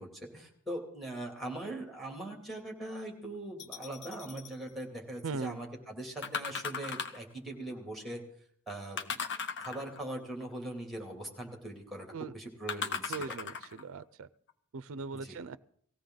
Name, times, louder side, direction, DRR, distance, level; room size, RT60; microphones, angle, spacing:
voice 1, 0.0-8.2 8.7-9.3 9.6-13.3 15.1-15.4, right 1 dB, ahead, 1 dB, 2.7 m, -41 dB
sound 1, 3.6-4.5 6.2-7.3 9.0-10.1 12.7-13.8 14.5-14.6, left 5 dB, 55° left, 1.0 m, -37 dB
voice 2, 5.2-5.6 12.1-12.3 13.1-14.3 14.7-15.6, right 4 dB, 65° right, 14 dB, 0.5 m, -39 dB
18.5 x 15.5 x 3.9 m, 0.64 s
head